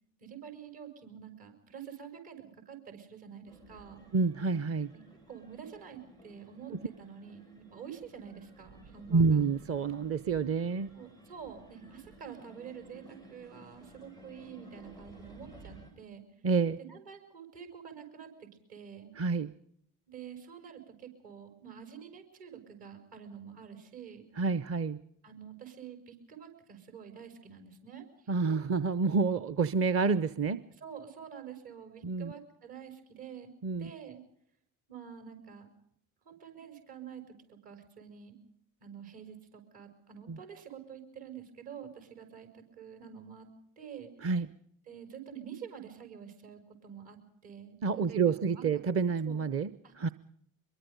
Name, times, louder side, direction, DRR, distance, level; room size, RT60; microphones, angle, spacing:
voice 1, 0.2-4.1 4.9-5.0 5.3-9.5 10.9-16.2 16.8-19.1 20.1-24.3 25.2-28.3 30.7-33.5 33.8-34.2 34.9-35.7 36.2-38.4 38.8-43.5 43.8-44.1 44.9-47.2 47.4-47.8 48.1-48.7 49.2-49.5 49.8-50.1, right 8 dB, 60° right, 6 dB, 5.7 m, -48 dB
sound 1, 3.5-15.9, right 2 dB, 90° right, 5.6 m, -55 dB
voice 2, 4.1-4.9 9.1-10.9 16.4-16.8 19.2-19.5 24.4-25.0 28.3-30.6 32.0-32.3 33.6-33.9 40.3-40.4 44.2-44.5 47.8-50.1, right 4 dB, 30° right, 15 dB, 0.8 m, -28 dB
24.0 x 22.5 x 5.2 m, 0.70 s
figure-of-eight pair, 55°, 45 cm